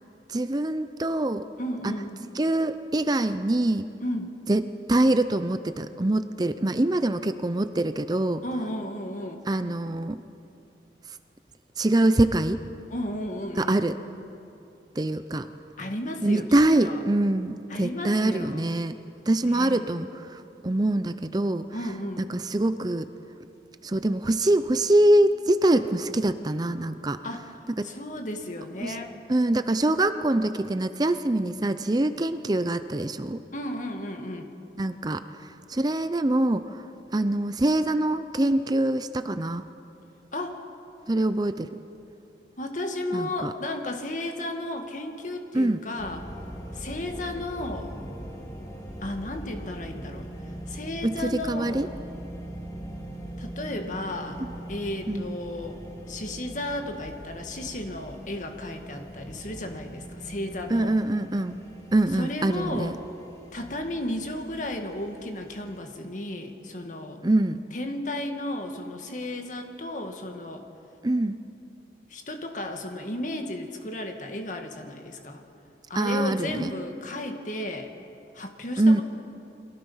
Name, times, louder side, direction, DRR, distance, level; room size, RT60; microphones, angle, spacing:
voice 1, 0.3-1.4 1.8-1.9 2.4-3.9 4.5-4.6 4.9-8.4 9.5-10.2 11.8-12.6 13.6-14.0 15.0-15.4 16.2-19.0 19.3-20.1 20.6-21.7 22.3-23.1 23.8-27.2 27.8-27.9 28.8-28.9 29.3-33.4 34.8-35.2 35.7-36.7 37.1-39.6 41.1-41.7 43.1-43.5 45.5-45.8 51.0-51.9 55.1-55.3 60.7-61.6 61.9-62.9 67.2-67.6 71.0-71.4 75.9-76.7 78.8-79.0, right 1 dB, 25° right, 11 dB, 0.5 m, -24 dB
voice 2, 1.6-2.2 4.0-4.3 8.4-9.5 12.9-13.8 15.8-17.0 17.7-18.7 19.4-19.9 21.7-22.3 27.2-27.6 27.8-29.2 33.5-34.5 40.3-40.6 42.6-46.3 46.7-47.9 49.0-50.3 50.7-51.9 53.4-55.8 56.1-61.0 62.1-63.0 63.5-67.2 67.7-70.7 72.1-75.4 75.9-77.9 78.3-79.0, left 1 dB, 45° left, 5 dB, 2.0 m, -34 dB
sound 1, 46.0-65.8, right 1 dB, 20° left, 3.1 m, -41 dB
29.5 x 22.5 x 5.6 m, 2.7 s
head